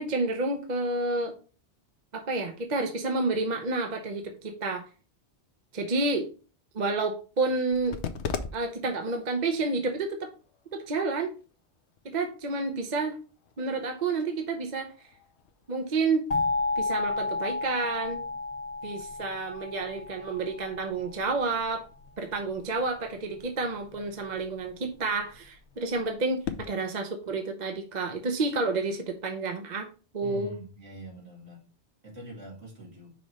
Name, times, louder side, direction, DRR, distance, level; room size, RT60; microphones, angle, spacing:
voice 1, 0.0-1.3 2.1-4.9 5.7-6.3 6.7-8.0 8.5-10.3 10.7-11.3 12.0-13.2 13.6-14.9 15.7-16.2 16.8-18.2 18.8-21.8 22.2-29.9 30.1-30.5, right 3 dB, 45° right, 5 dB, 0.8 m, -30 dB
sound 1, 7.6-26.7, left 6 dB, 90° left, 0.9 m, -45 dB
sound 2, 16.3-21.0, left 3 dB, 40° left, 1.0 m, -31 dB
voice 2, 30.2-31.7 32.0-33.1, right 1 dB, 70° right, -3 dB, 2.9 m, -44 dB
5.7 x 3.1 x 5.3 m, 0.35 s
omnidirectional pair, 1.1 m